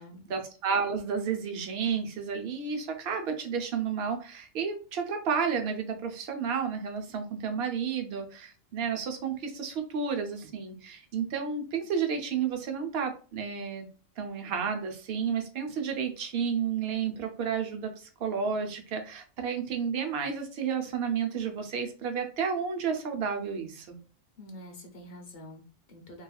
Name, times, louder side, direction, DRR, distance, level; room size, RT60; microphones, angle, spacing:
voice 1, 0.0-13.8 14.2-24.0, right 6 dB, 60° right, 4 dB, 0.8 m, -31 dB
voice 2, 24.4-26.2, left 1 dB, 55° left, 2 dB, 0.9 m, -47 dB
3.1 x 2.3 x 2.3 m, 0.37 s
omnidirectional pair, 1.3 m